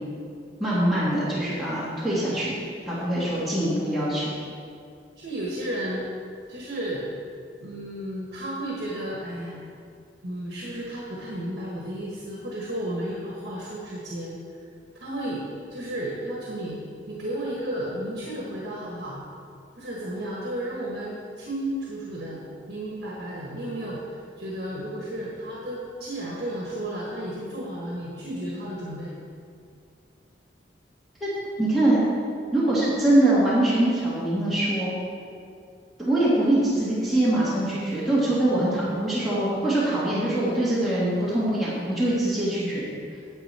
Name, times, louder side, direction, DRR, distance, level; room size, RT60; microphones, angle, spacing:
voice 1, 0.6-4.3 31.2-31.3 31.6-32.0 32.5-34.9 36.0-42.9, right 1 dB, ahead, -11 dB, 2.1 m, -23 dB
voice 2, 5.2-6.1 6.5-7.1 7.6-9.6 10.2-14.3 15.0-15.4 15.7-16.8 17.1-19.2 19.7-22.4 22.7-29.2, right 1 dB, 65° right, -4 dB, 1.5 m, -33 dB
9.8 x 7.9 x 4.4 m, 2.3 s
head